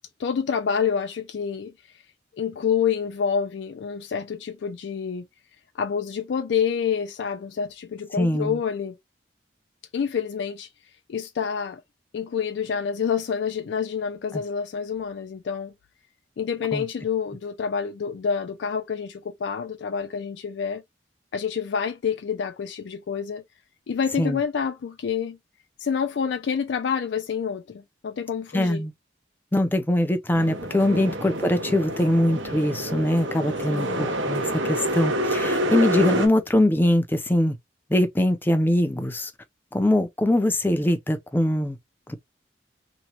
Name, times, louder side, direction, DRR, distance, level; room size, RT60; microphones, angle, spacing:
voice 1, 0.2-1.7 2.4-5.3 5.7-9.0 9.9-10.7 11.1-11.8 12.1-15.7 16.4-20.8 21.3-23.4 23.9-25.4 25.8-28.8 30.9-31.2 33.7-34.1, left 7 dB, 70° left, 0.4 m, -28 dB
voice 2, 8.2-8.6 14.3-14.4 16.7-16.8 24.2-24.4 28.5-28.9 29.5-37.5 37.9-39.3 39.7-41.8 42.1-42.2, left 1 dB, 10° left, 0.4 m, -22 dB
sound 1, 30.3-36.3, right 1 dB, 85° right, 0.8 m, -27 dB
3.0 x 2.1 x 2.8 m
head